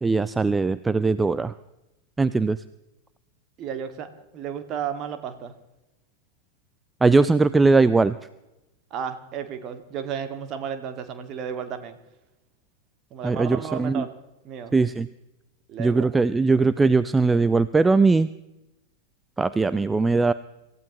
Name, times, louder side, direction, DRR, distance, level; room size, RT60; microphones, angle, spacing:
voice 1, 0.0-1.5 2.2-2.6 7.0-8.2 13.2-14.0 14.7-15.1 15.8-18.3 19.4-20.3, right 3 dB, 10° right, 15 dB, 0.4 m, -20 dB
voice 2, 3.6-5.5 8.9-12.0 13.1-14.2 14.4-14.9 15.7-16.1, right 8 dB, 35° right, 8 dB, 1.9 m, -33 dB
27.0 x 15.0 x 3.0 m, 0.94 s
figure-of-eight pair, 90°, 0 cm